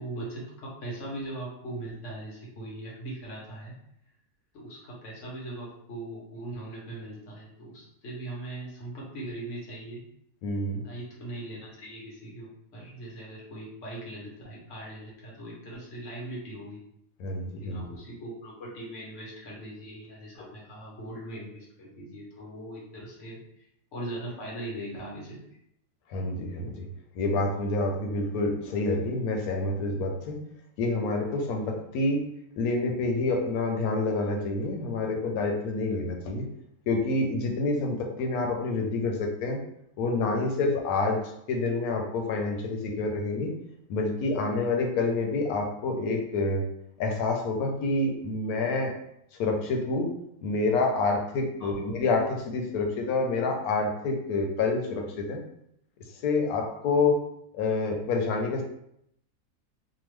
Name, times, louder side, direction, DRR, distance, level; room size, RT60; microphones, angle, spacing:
voice 1, 0.0-3.7 4.5-10.0 10.8-16.8 17.6-23.6 23.9-25.4 51.6-51.9, right 1 dB, 60° left, -4 dB, 1.1 m, -40 dB
voice 2, 10.4-10.8 17.2-17.9 20.4-20.5 26.1-26.9 27.1-30.4 30.8-32.3 32.6-36.5 36.9-39.6 40.0-43.5 43.9-46.6 47.0-49.0 49.4-50.1 50.4-55.4 56.2-57.2 57.5-58.6, left 3 dB, 90° left, 2 dB, 1.1 m, -28 dB
2.9 x 2.1 x 3.1 m, 0.75 s
omnidirectional pair, 1.5 m